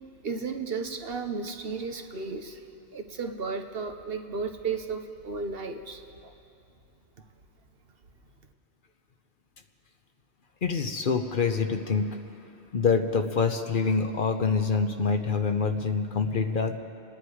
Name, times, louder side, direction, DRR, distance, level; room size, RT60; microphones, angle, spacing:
voice 1, 0.2-2.6 2.9-6.3, right 4 dB, 60° right, 5 dB, 1.2 m, -34 dB
voice 2, 10.6-12.1 12.7-16.8, left 5 dB, 50° left, 6 dB, 0.9 m, -26 dB
28.5 x 10.5 x 4.9 m, 2.6 s
omnidirectional pair, 1.1 m